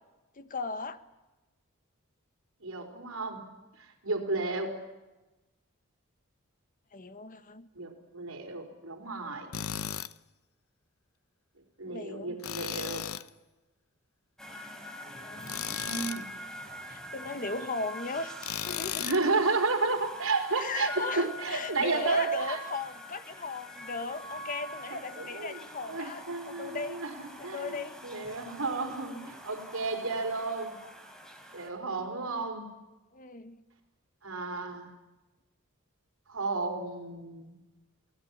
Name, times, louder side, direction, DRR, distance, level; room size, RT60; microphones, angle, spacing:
voice 1, 0.4-1.0 6.9-7.7 11.9-12.4 15.0-15.7 16.9-19.2 20.5-27.0 27.4-28.0 33.1-33.6, left 4 dB, 40° left, 11 dB, 1.3 m, -37 dB
voice 2, 2.6-3.4 4.0-4.8 7.7-9.5 11.8-13.1 15.7-16.2 18.9-22.6 24.9-27.1 27.4-30.8 31.5-32.7 34.2-34.9 36.3-37.6, right 3 dB, 80° right, 3 dB, 5.0 m, -32 dB
Tools, 9.5-10.1 12.4-13.3 15.4-16.2 18.4-19.2, left 10 dB, 85° left, 0.8 m, -35 dB
sound 1, 14.4-31.7, equal, 5° left, 3.6 m, -44 dB
28.0 x 19.5 x 7.4 m, 1.1 s
head